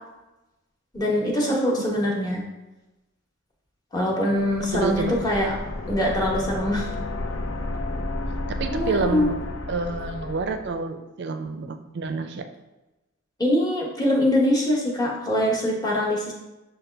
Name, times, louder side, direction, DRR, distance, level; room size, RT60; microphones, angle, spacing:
voice 1, 0.9-2.4 3.9-5.5 5.9-6.9 8.7-9.3 13.4-16.3, left 1 dB, 20° left, -3 dB, 0.9 m, -23 dB
sound 1, 4.4-10.8, left 2 dB, 80° left, 0.5 m, -32 dB
voice 2, 4.7-5.1 8.5-9.3 9.7-12.5, right 4 dB, 55° right, 7 dB, 0.4 m, -28 dB
6.6 x 2.2 x 3.3 m, 1.0 s
head